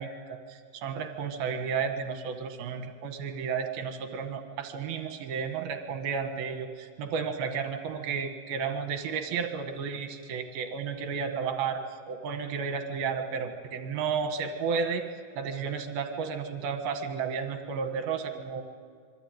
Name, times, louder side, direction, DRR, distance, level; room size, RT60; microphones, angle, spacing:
voice 1, 0.0-11.8 12.1-15.0 15.3-18.6, right 6 dB, 60° right, 6 dB, 3.0 m, -32 dB
26.5 x 23.0 x 9.3 m, 2.2 s
omnidirectional pair, 5.7 m